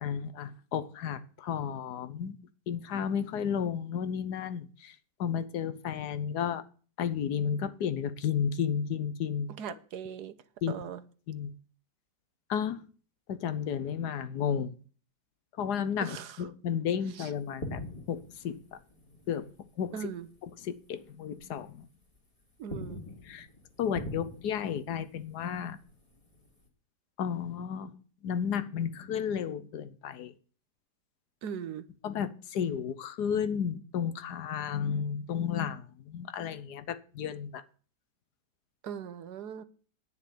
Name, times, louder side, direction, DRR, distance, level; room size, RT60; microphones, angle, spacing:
voice 1, 0.0-2.4 2.7-4.9 5.2-6.6 7.0-9.5 10.6-10.8 11.3-11.5 12.5-12.8 13.3-14.8 15.6-17.8 18.1-18.8 19.3-19.5 19.8-19.9 20.6-21.9 23.2-23.5 23.8-25.8 27.2-30.3 32.0-37.6, left 8 dB, 75° left, 1.4 m, -33 dB
voice 2, 9.6-10.3 10.7-11.0 16.0-16.4 17.2-17.3 19.9-20.3 22.6-23.0 31.4-31.9 38.8-39.6, right 8 dB, 75° right, 1.4 m, -39 dB
sound 1, 17.4-20.4 20.6-20.9 21.4-22.2 22.5-26.7, left 1 dB, 20° left, 2.4 m, -44 dB
9.6 x 6.6 x 8.5 m
omnidirectional pair, 1.8 m